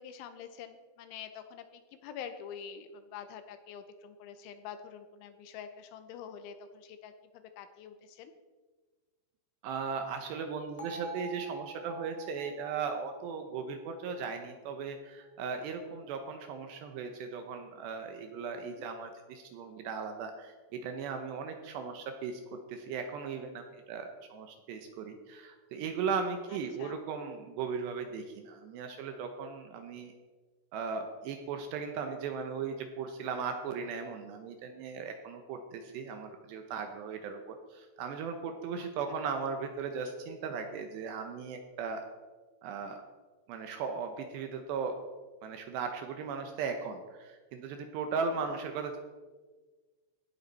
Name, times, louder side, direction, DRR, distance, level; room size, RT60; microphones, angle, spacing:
voice 1, 0.0-8.3 18.6-18.9 26.5-27.0 38.8-39.2, left 8 dB, 80° left, 9 dB, 3.0 m, -46 dB
voice 2, 9.6-22.4 22.7-30.1 30.7-42.1 42.6-43.1 43.5-45.0 45.4-49.0, right 5 dB, 75° right, 5 dB, 2.7 m, -37 dB
Bell, 10.8-14.9, right 5 dB, 10° left, 1.7 m, -47 dB
17.0 x 10.5 x 4.2 m, 1.4 s
omnidirectional pair, 5.7 m